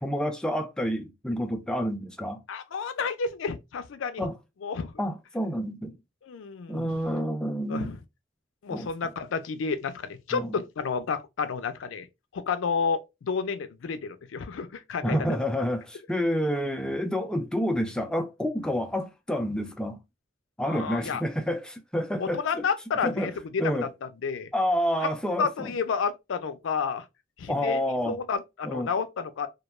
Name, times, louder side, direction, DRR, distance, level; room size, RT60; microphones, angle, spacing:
voice 1, 0.0-2.4 4.2-4.4 5.0-6.0 6.7-7.9 8.7-8.9 10.3-10.5 15.0-20.0 20.6-22.6 23.0-23.3 23.6-23.9 24.5-25.7 27.5-28.2 28.6-28.9, equal, 5° left, 0.3 m, -29 dB
voice 2, 2.5-4.3 4.6-4.9 6.2-7.0 7.7-8.0 8.6-12.1 12.3-15.2 20.6-21.2 22.2-24.5 25.0-25.1 25.4-27.1 27.4-27.8 28.1-29.5, left 5 dB, 85° left, 0.4 m, -30 dB
2.2 x 2.2 x 2.9 m
head